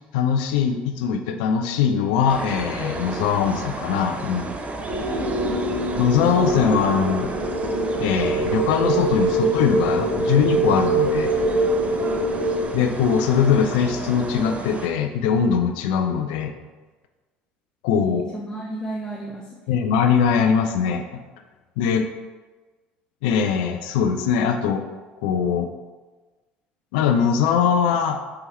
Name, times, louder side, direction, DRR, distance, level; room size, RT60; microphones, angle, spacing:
voice 1, 0.1-4.6 6.0-7.3 8.0-11.3 12.7-16.5 17.8-18.2 19.7-21.2 21.8-22.0 23.2-24.8 25.2-25.7 26.9-28.2, left 7 dB, 70° left, 5 dB, 0.4 m, -21 dB
sound 1, 2.3-14.9, right 3 dB, 30° right, 0.6 m, -32 dB
sound 2, 4.9-12.7, right 2 dB, 65° right, 1.3 m, -24 dB
voice 2, 5.0-5.7 12.0-12.2 17.9-19.6, right 2 dB, 10° left, -4 dB, 0.7 m, -33 dB
4.6 x 3.4 x 3.1 m, 1.3 s
hypercardioid pair, 65°, 5 cm